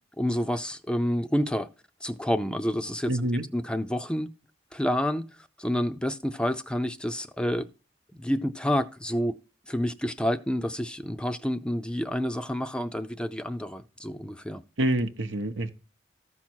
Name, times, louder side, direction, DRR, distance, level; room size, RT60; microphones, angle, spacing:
voice 1, 0.2-1.7 2.0-4.3 4.7-5.3 5.6-7.7 8.2-9.4 9.7-14.6, equal, 5° left, 0.4 m, -29 dB
voice 2, 3.1-3.4 14.8-15.7, right 1 dB, 90° right, 1.0 m, -26 dB
13.5 x 5.9 x 4.5 m
head